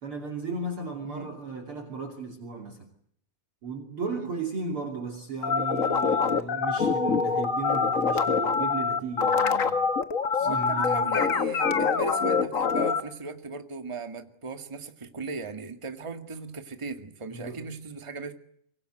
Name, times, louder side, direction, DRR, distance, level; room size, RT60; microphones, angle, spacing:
voice 1, 0.0-2.9 3.6-9.9 10.3-11.1 17.3-17.6, right 4 dB, 45° right, 3.5 m, -35 dB
sound 1, 5.4-13.0, left 5 dB, 50° left, 0.9 m, -25 dB
voice 2, 10.4-18.3, right 4 dB, 15° right, 1.3 m, -38 dB
25.0 x 24.5 x 8.0 m
omnidirectional pair, 3.7 m